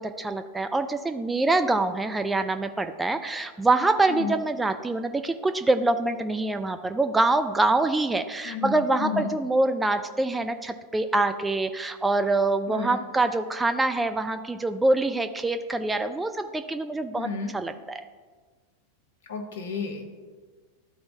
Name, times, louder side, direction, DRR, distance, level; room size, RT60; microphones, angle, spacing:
voice 1, 0.0-18.0, right 2 dB, 10° right, 8 dB, 0.3 m, -25 dB
voice 2, 8.4-9.3 12.7-13.0 17.1-17.5 19.3-20.2, left 5 dB, 60° left, 6 dB, 1.0 m, -32 dB
12.5 x 4.3 x 2.7 m, 1.4 s
figure-of-eight pair, 90°, 0 cm